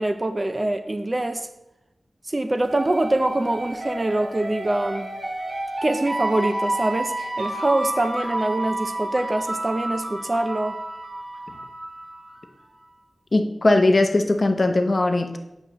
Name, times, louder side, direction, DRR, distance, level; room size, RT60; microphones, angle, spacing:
voice 1, 0.0-1.5 2.3-5.1 5.8-10.8, right 1 dB, 30° right, 0.4 m, -24 dB
sound 1, 2.6-12.3, right 1 dB, 65° right, 1.2 m, -30 dB
voice 2, 13.3-15.4, left 2 dB, 45° left, 0.7 m, -19 dB
8.2 x 6.3 x 2.9 m
wide cardioid pair, 85°, 0 cm